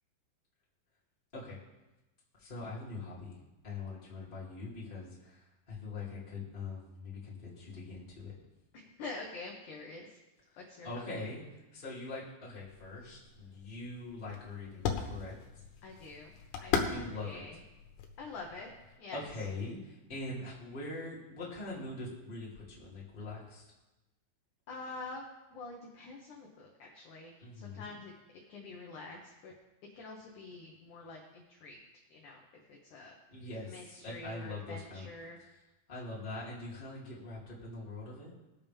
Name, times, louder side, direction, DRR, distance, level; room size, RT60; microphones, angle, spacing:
voice 1, 2.4-3.4 3.6-8.3 10.8-11.4 11.7-15.4 16.9-17.4 19.1-23.7 27.4-27.9 33.3-35.1 35.9-38.3, left 3 dB, 15° left, -7 dB, 2.2 m, -43 dB
voice 2, 8.7-10.2 10.6-11.2 15.8-16.3 16.6-17.6 18.2-18.7 19.0-19.2 24.7-25.3 25.5-28.1 28.5-29.5 29.9-31.8 32.1-32.4 32.7-33.2 33.7-35.4, left 3 dB, 70° left, -1 dB, 1.9 m, -46 dB
sound 1, 12.7-19.0, left 6 dB, 85° left, 3.3 m, -39 dB
20.5 x 7.2 x 3.5 m, 1.0 s
omnidirectional pair, 5.1 m